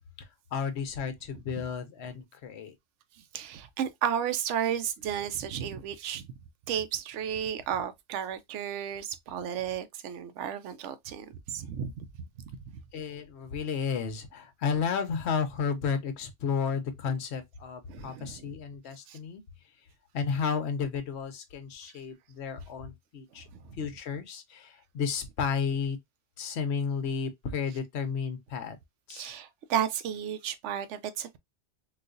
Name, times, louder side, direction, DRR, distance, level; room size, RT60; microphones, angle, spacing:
voice 1, 0.2-2.7 12.9-19.4 20.1-23.4 23.8-26.0 26.4-28.8 29.1-29.3, left 6 dB, 65° left, 1.0 m, -32 dB
voice 2, 3.3-6.3 6.7-12.0 12.6-12.7 17.9-18.4 19.1-19.2 23.6-23.9 29.1-31.4, right 9 dB, 75° right, 0.9 m, -33 dB
3.9 x 2.5 x 2.4 m
omnidirectional pair, 1.3 m